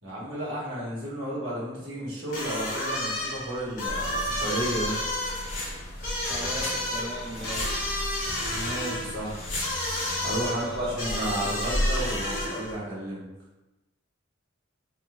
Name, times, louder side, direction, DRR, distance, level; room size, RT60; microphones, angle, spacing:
voice 1, 0.0-5.0 8.5-9.4 10.2-13.2, right 1 dB, 85° right, -7 dB, 1.3 m, -32 dB
sound 1, 2.3-12.8, left 1 dB, 45° left, 1.0 m, -32 dB
sound 2, 3.9-12.4, left 1 dB, 75° left, 1.0 m, -34 dB
voice 2, 6.3-7.8 10.4-11.5, right 1 dB, ahead, -5 dB, 0.5 m, -38 dB
3.4 x 3.0 x 2.2 m, 1.0 s
head